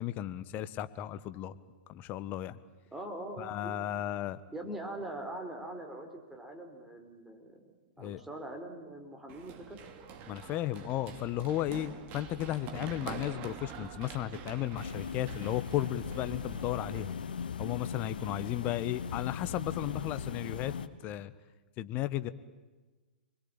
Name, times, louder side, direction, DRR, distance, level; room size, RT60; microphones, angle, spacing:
voice 1, 0.0-1.5 1.9-2.6 3.4-4.4 8.0-8.2 10.3-17.1 17.6-20.7 21.0-21.3 21.8-22.3, left 13 dB, 35° left, 13 dB, 1.3 m, -34 dB
voice 2, 2.9-4.0 4.5-7.7 8.0-9.8 11.6-11.8, right 1 dB, 5° right, 3 dB, 4.5 m, -42 dB
Run, 9.3-17.0, right 7 dB, 35° right, 2.8 m, -45 dB
sound 1, 14.7-20.9, left 6 dB, 70° left, 1.3 m, -39 dB
28.5 x 21.5 x 9.0 m, 1.2 s
figure-of-eight pair, 110°, 5 cm